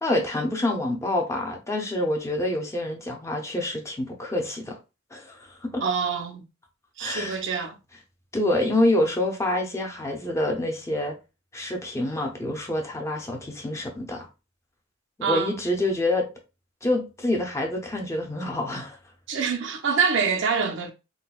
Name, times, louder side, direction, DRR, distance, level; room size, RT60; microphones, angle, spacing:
voice 1, 0.0-4.8 5.1-5.8 7.0-7.4 8.3-11.1 11.5-14.3 15.3-16.3 16.8-19.0, left 1 dB, 15° left, 0.6 m, -27 dB
voice 2, 5.8-6.4 7.0-7.8 15.2-15.6 19.3-20.9, right 5 dB, 65° right, 0.5 m, -25 dB
3.8 x 2.2 x 2.3 m
head